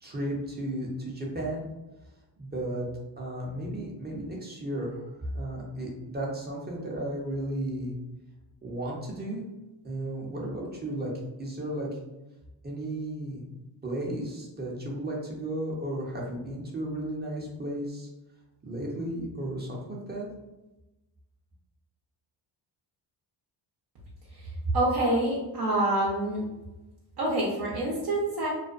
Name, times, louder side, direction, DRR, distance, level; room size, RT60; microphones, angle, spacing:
voice 1, 0.0-1.7 2.4-2.9 3.2-7.9 8.6-9.4 9.8-11.1 11.4-11.9 12.6-13.5 13.8-18.1 18.6-20.3, right 1 dB, 20° right, -2 dB, 0.7 m, -34 dB
voice 2, 24.7-26.4 27.2-28.5, right 1 dB, 55° right, -5 dB, 0.8 m, -26 dB
2.4 x 2.2 x 2.5 m, 1.0 s
cardioid pair, 75°, 45 cm